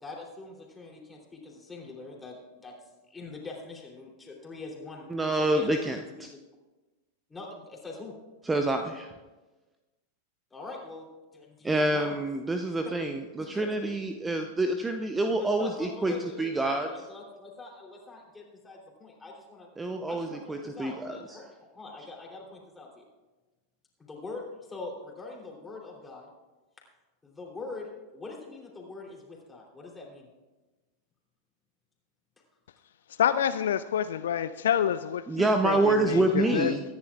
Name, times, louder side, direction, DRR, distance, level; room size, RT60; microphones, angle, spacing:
voice 1, 0.0-2.7 3.1-6.4 7.3-8.1 10.5-11.1 11.3-12.2 13.4-13.9 15.3-19.7 20.1-23.0 24.0-26.3 27.2-30.3 35.6-36.6, left 3 dB, 10° left, -2 dB, 3.2 m, -43 dB
voice 2, 5.1-6.3 8.5-9.1 11.6-16.9 19.8-21.5 35.3-36.8, right 2 dB, 10° right, 6 dB, 0.7 m, -27 dB
voice 3, 33.2-36.7, left 9 dB, 60° left, 12 dB, 0.4 m, -27 dB
23.5 x 10.5 x 2.4 m, 1.2 s
figure-of-eight pair, 90°, 0 cm